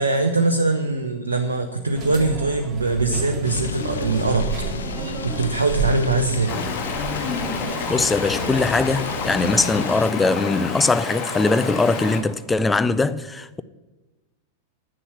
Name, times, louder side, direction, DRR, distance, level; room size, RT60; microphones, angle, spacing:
voice 1, 0.0-4.5 5.2-6.6, right 3 dB, 75° right, 0.7 m, -22 dB
sound 1, 1.9-9.7, right 2 dB, 25° right, 2.2 m, -31 dB
sound 2, 3.4-10.1, left 8 dB, 65° left, 0.5 m, -34 dB
Stream, 6.5-12.2, left 5 dB, 40° left, 1.5 m, -29 dB
voice 2, 7.9-13.6, left 3 dB, 10° left, 0.4 m, -21 dB
8.8 x 7.0 x 8.2 m
figure-of-eight pair, 90°, 0 cm